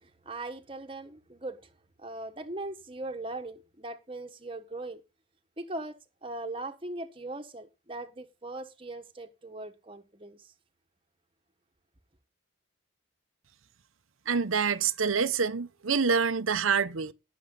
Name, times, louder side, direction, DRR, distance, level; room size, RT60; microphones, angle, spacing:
voice 1, 0.0-1.7 2.0-5.0 5.6-10.5, right 2 dB, 25° right, 1.3 m, -40 dB
voice 2, 14.3-17.1, right 5 dB, 85° right, 0.9 m, -26 dB
18.5 x 7.2 x 3.9 m
head